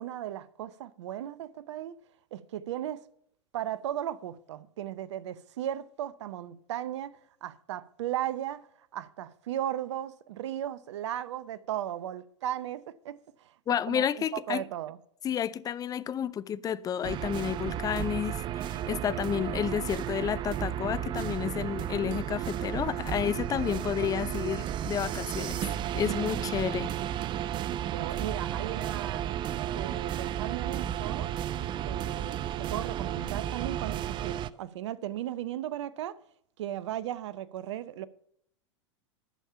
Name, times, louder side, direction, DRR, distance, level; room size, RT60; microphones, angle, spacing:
voice 1, 0.0-2.0 2.3-3.0 3.5-8.7 8.9-13.5 13.9-15.0 26.3-27.0 27.9-31.3 31.8-36.2 36.6-38.1, right 12 dB, 70° right, 0.7 m, -36 dB
voice 2, 13.7-14.6 15.2-25.7 25.9-26.9, left 9 dB, 25° left, 0.5 m, -31 dB
sound 1, 17.0-34.5, right 11 dB, 30° right, 0.5 m, -33 dB
11.5 x 7.3 x 5.6 m
hypercardioid pair, 95°, 15 cm